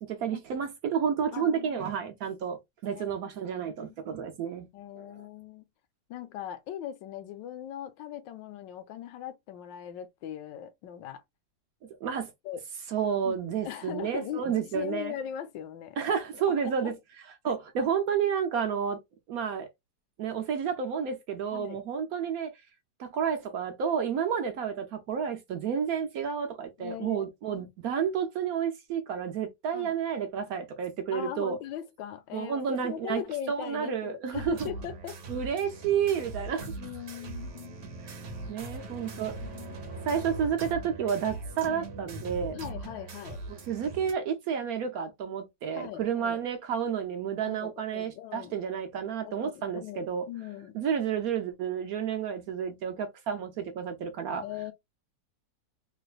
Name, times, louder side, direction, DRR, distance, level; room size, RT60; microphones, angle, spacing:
voice 1, 0.0-4.7 5.0-5.1 12.0-12.3 12.9-15.1 16.0-16.9 17.4-19.0 19.3-19.7 20.2-22.5 23.0-31.6 32.3-33.2 33.5-34.7 35.3-36.7 38.0-39.4 40.0-42.6 43.5-50.2 50.7-54.4, right 7 dB, 70° right, 0.9 m, -31 dB
voice 2, 1.3-1.9 2.9-3.1 3.6-4.0 4.7-5.6 6.1-11.2 12.4-12.6 13.2-16.1 16.5-17.0 17.4-17.5 21.5-21.8 26.8-27.7 29.7-30.0 31.1-35.2 36.8-37.8 38.7-39.8 41.7-41.8 42.5-43.4 45.7-46.4 47.4-48.5 49.2-50.7 54.4-54.7, left 11 dB, 85° left, 1.3 m, -40 dB
sound 1, 34.3-44.1, right 2 dB, 50° right, 1.1 m, -40 dB
3.3 x 3.0 x 2.3 m
omnidirectional pair, 1.9 m